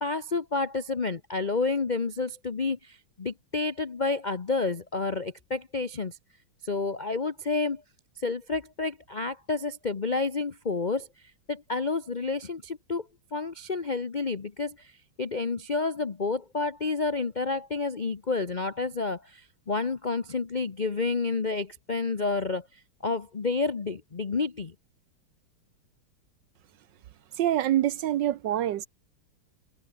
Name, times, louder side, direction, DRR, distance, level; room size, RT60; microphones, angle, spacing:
voice 1, 0.0-6.2 6.6-7.8 8.2-11.1 11.5-24.7, left 4 dB, 85° left, 0.4 m, -30 dB
voice 2, 27.4-28.9, right 12 dB, 65° right, 1.2 m, -25 dB
omnidirectional pair, 2.4 m